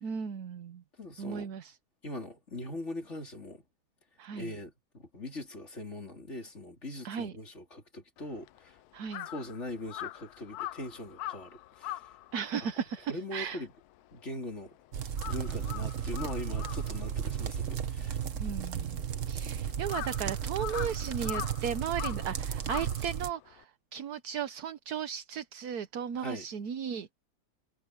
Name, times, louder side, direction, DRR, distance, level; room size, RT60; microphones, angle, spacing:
voice 1, 0.0-0.8 1.2-1.8 4.2-4.5 7.0-7.3 8.9-9.3 12.3-13.6 18.4-19.0 19.3-27.1, right 8 dB, 70° right, 1.5 m, -36 dB
voice 2, 1.0-1.5 2.0-3.6 4.3-8.8 9.3-12.1 13.1-13.7 14.1-14.8 15.2-18.2 26.1-26.5, left 1 dB, 45° left, 3.8 m, -41 dB
Crow, 8.2-14.7 15.0-23.6, left 14 dB, 75° left, 1.1 m, -43 dB
sound 1, 14.9-23.3, right 8 dB, 55° right, 1.3 m, -34 dB
omnidirectional pair, 1.7 m